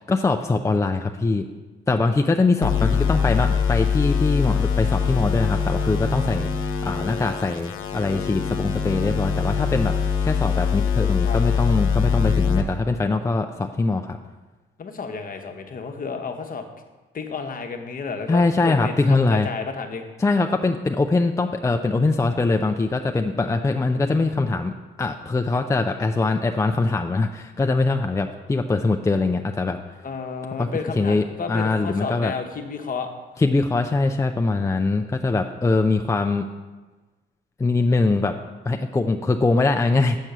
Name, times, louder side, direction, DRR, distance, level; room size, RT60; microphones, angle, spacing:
voice 1, 0.1-1.5 1.9-14.2 18.3-19.5 20.2-29.8 30.6-30.7 31.0-32.3 33.4-36.5 37.6-38.3 38.7-40.2, left 3 dB, 15° left, 5 dB, 0.4 m, -22 dB
sound 1, 2.6-12.6, left 6 dB, 90° left, 0.8 m, -23 dB
voice 2, 2.8-3.1 11.2-11.4 14.8-16.7 17.1-20.0 30.0-33.1, left 5 dB, 45° left, 6 dB, 1.0 m, -32 dB
7.4 x 4.5 x 6.7 m, 1.2 s
cardioid pair, 90°, 20 cm